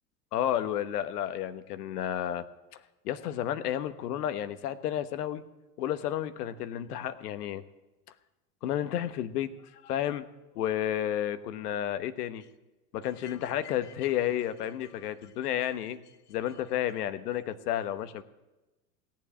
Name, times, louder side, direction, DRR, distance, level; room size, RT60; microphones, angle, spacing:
voice 1, 0.3-2.4 3.0-5.4 5.8-7.6 8.6-9.5 9.8-10.2 10.5-12.4 12.9-16.0 16.3-18.2, left 11 dB, 75° left, 11 dB, 1.3 m, -31 dB
17.0 x 7.5 x 9.9 m, 1.1 s
hypercardioid pair, 95°, 47 cm